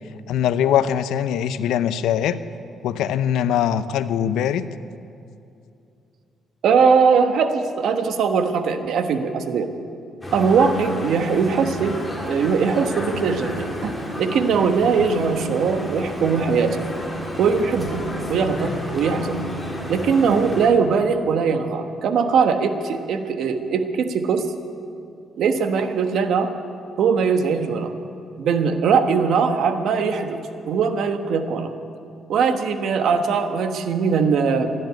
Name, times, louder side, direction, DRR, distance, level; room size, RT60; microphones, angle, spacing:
voice 1, 0.3-2.4 2.8-4.6, left 9 dB, 85° left, 13 dB, 0.6 m, -22 dB
voice 2, 6.6-9.7 10.3-12.0 12.3-13.9 14.2-16.9 17.4-19.4 19.9-24.5 25.4-26.5 27.0-27.9 28.4-31.7 32.3-34.7, right 5 dB, 75° right, 7 dB, 1.2 m, -20 dB
sound 1, 10.2-20.7, equal, 5° left, 3.5 m, -31 dB
15.5 x 11.0 x 8.0 m, 2.6 s
cardioid pair, 90°, 0 cm